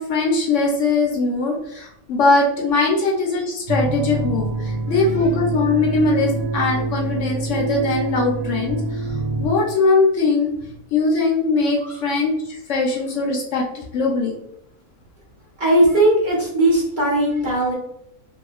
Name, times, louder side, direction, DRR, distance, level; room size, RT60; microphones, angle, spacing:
voice 1, 0.0-9.1 9.4-10.5 10.9-14.4, left 3 dB, 70° left, 0 dB, 0.9 m, -21 dB
sound 1, 3.7-9.5, right 3 dB, 75° right, 1.0 m, -25 dB
voice 2, 15.6-17.7, right 1 dB, 35° right, -7 dB, 1.1 m, -18 dB
3.0 x 2.8 x 2.3 m, 0.75 s
omnidirectional pair, 1.4 m